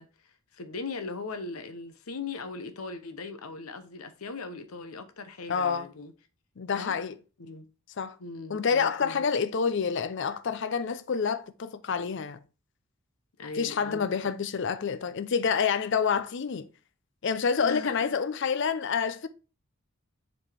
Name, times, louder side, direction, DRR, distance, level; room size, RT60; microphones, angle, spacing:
voice 1, 0.0-6.1 6.7-7.0 7.4-7.6 8.2-9.2 13.4-14.1 17.6-18.1, left 4 dB, 85° left, 0.8 m, -39 dB
voice 2, 5.5-5.9 6.6-7.1 8.0-8.2 8.5-12.4 13.5-16.7 17.2-19.3, left 6 dB, 55° left, 0.5 m, -28 dB
7.2 x 4.2 x 3.3 m
head